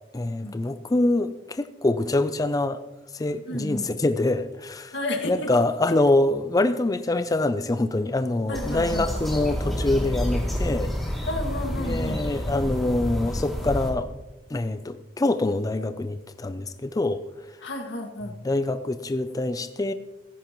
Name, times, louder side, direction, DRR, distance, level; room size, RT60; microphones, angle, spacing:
voice 1, 0.1-2.8 3.1-4.9 5.2-10.9 11.8-14.1 14.5-17.2 18.4-19.9, left 2 dB, 20° left, 11 dB, 0.4 m, -25 dB
voice 2, 3.5-3.9 4.9-5.5 8.5-9.1 11.3-12.2 17.6-18.3, left 1 dB, 90° left, 3 dB, 2.0 m, -31 dB
sound 1, 8.5-13.9, equal, ahead, 2.6 m, -29 dB
16.0 x 15.0 x 3.0 m, 1.1 s
head